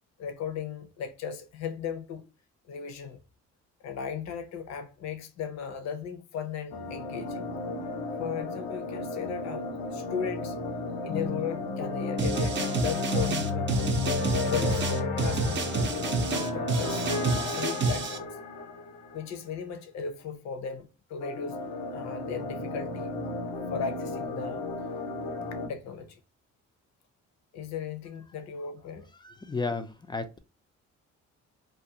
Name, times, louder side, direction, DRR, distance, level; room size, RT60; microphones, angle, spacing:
voice 1, 0.2-2.3 2.7-3.2 3.8-7.5 8.2-10.6 11.0-13.9 14.5-14.8 15.2-18.3 19.1-21.6 21.9-23.1 23.7-24.7 25.7-26.2 27.5-29.1, left 6 dB, 60° left, 0.6 m, -36 dB
sound 1, 6.7-19.3 21.2-25.7, left 3 dB, 85° left, 0.9 m, -33 dB
sound 2, 12.2-18.2, right 4 dB, 40° right, 0.5 m, -29 dB
voice 2, 29.2-30.4, left 3 dB, 15° left, 0.3 m, -33 dB
2.5 x 2.3 x 2.7 m
cardioid pair, 90°, 30 cm